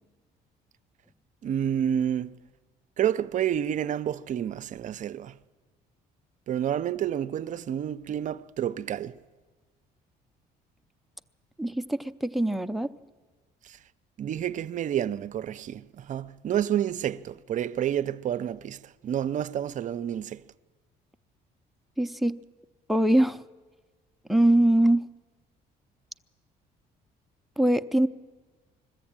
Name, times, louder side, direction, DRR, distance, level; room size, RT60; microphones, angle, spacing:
voice 1, 1.4-2.4 3.0-5.4 6.5-9.2 13.6-13.8 14.2-20.4, right 10 dB, 50° right, 0.5 m, -29 dB
voice 2, 11.6-12.9 22.0-22.4 22.9-23.4 24.3-25.0 27.6-28.1, right 1 dB, ahead, 0.6 m, -22 dB
21.5 x 14.5 x 8.8 m
cardioid pair, 110°, 17 cm